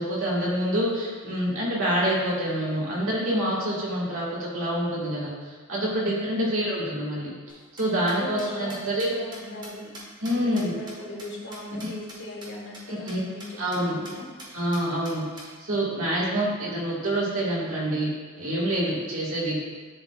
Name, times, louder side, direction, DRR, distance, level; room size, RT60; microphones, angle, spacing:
voice 1, 0.0-7.3 7.7-9.1 10.2-10.7 11.7-11.9 12.9-13.2 13.6-14.0 14.5-19.6, right 1 dB, 65° right, -5 dB, 1.7 m, -27 dB
sound 1, 7.5-12.2 12.4-12.5 12.7-12.8 13.1-13.2 13.4-13.8 14.0-14.1 14.4-15.5, right 1 dB, 20° right, 1.4 m, -43 dB
voice 2, 8.1-9.9 10.2-14.3, left 1 dB, 55° left, -3 dB, 1.3 m, -39 dB
11.0 x 4.0 x 2.4 m, 1.5 s
head